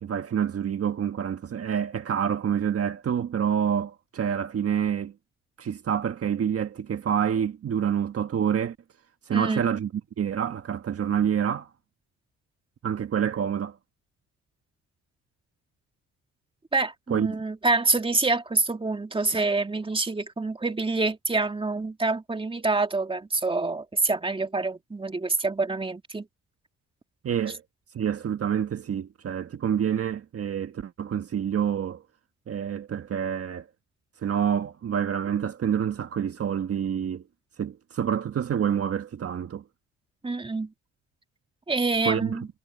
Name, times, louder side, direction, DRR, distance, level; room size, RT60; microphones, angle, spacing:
voice 1, 0.0-5.1 5.6-8.7 9.3-9.9 10.2-11.7 12.8-13.8 17.1-17.3 27.2-27.6 27.9-32.0 32.5-33.7 34.2-37.2 37.6-39.6 42.0-42.4, right 8 dB, 50° right, 1.5 m, -27 dB
voice 2, 9.3-9.7 16.7-26.3 40.2-40.7 41.7-42.5, right 3 dB, 20° right, 2.2 m, -26 dB
cardioid pair, 90°, 30 cm